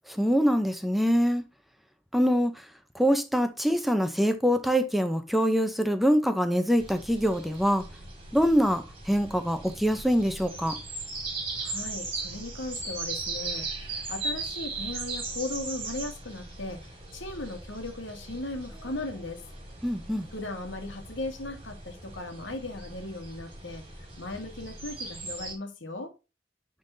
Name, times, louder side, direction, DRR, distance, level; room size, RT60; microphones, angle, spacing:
voice 1, 0.1-1.4 2.1-2.7 2.9-7.9 8.3-10.8 19.8-20.3, equal, ahead, 0.6 m, -24 dB
sound 1, 6.8-25.5, right 3 dB, 30° right, 2.5 m, -38 dB
voice 2, 11.6-19.4 20.3-23.8 24.2-26.1, left 2 dB, 90° left, 1.6 m, -37 dB
10.0 x 3.8 x 2.6 m
head